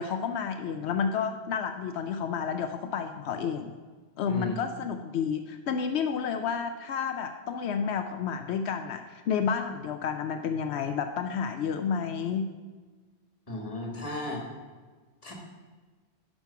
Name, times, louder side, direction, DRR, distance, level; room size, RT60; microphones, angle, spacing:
voice 1, 0.0-3.7 4.2-12.5, left 6 dB, 85° left, 7 dB, 0.9 m, -30 dB
voice 2, 4.3-4.6 13.5-14.4 15.2-15.3, left 1 dB, 35° left, 0 dB, 1.8 m, -35 dB
10.5 x 5.5 x 5.7 m, 1.4 s
omnidirectional pair, 1.1 m